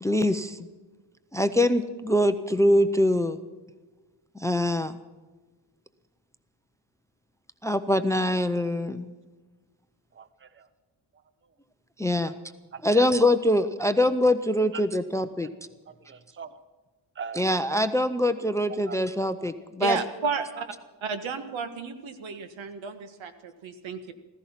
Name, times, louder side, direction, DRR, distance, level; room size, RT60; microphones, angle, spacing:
voice 1, 0.0-0.7 1.3-3.4 4.4-4.9 7.6-9.1 12.0-12.3 12.8-15.5 17.4-20.0, left 1 dB, 5° left, 12 dB, 0.5 m, -23 dB
voice 2, 10.1-10.7 12.3-12.4 12.7-13.1 14.0-14.1 14.7-14.8 15.9-16.6 17.1-17.5 18.7-19.0 20.2-20.6, right 6 dB, 25° right, 13 dB, 0.8 m, -41 dB
voice 3, 19.8-20.7 21.0-24.1, right 5 dB, 90° right, 9 dB, 1.7 m, -32 dB
15.5 x 15.0 x 5.7 m, 1.3 s
wide cardioid pair, 170°, 45 cm